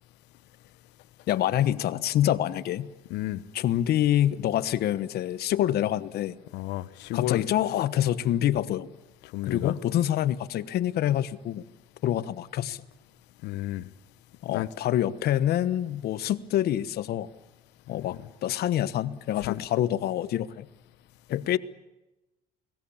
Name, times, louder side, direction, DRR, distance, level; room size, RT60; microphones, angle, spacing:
voice 1, 1.3-2.9 3.5-6.4 7.1-8.9 9.4-11.6 12.0-12.8 14.4-17.3 17.9-20.7 21.3-21.6, left 12 dB, 70° left, 1.2 m, -26 dB
voice 2, 3.1-3.4 6.5-7.4 9.3-9.7 13.4-13.8 14.5-14.7 19.4-19.6, left 16 dB, 90° left, 1.1 m, -31 dB
29.5 x 20.0 x 7.2 m
cardioid pair, 110°, 17 cm